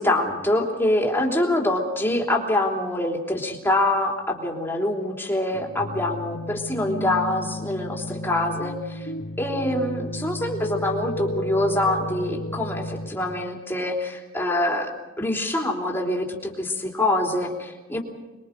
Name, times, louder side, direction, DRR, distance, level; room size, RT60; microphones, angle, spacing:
voice 1, 0.0-9.1 9.4-14.9 15.2-18.0, left 1 dB, 10° left, 0 dB, 3.3 m, -25 dB
sound 1, 5.5-13.1, left 1 dB, 60° left, 2.2 m, -33 dB
27.0 x 22.5 x 5.2 m, 1.1 s
head